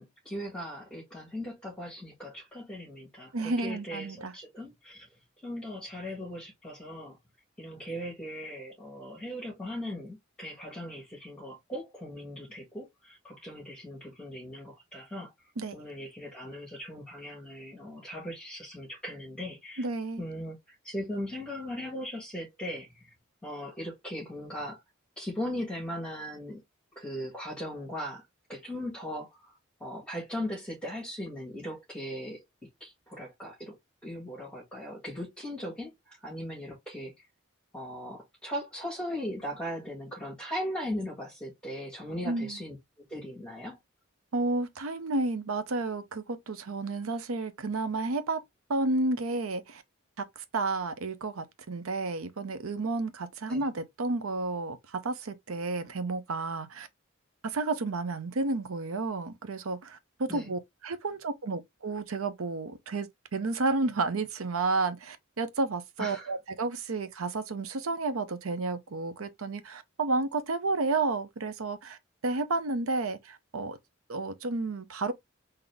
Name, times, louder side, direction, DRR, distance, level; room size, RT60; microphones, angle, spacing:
voice 1, 0.0-5.1 5.4-7.2 7.6-15.3 15.7-19.9 20.2-23.1 23.4-24.8 25.2-26.6 26.9-28.2 28.5-29.5 29.8-32.4 32.8-37.2 37.7-43.8 53.5-53.7 60.3-60.5 66.0-66.3, equal, 5° left, 1.6 m, -38 dB
voice 2, 3.3-4.3 15.6-15.7 19.8-20.2 42.2-42.6 44.3-48.4 48.7-49.8 50.2-56.9 57.4-73.8 74.1-75.1, right 3 dB, 85° right, 0.7 m, -31 dB
3.9 x 2.8 x 3.3 m
head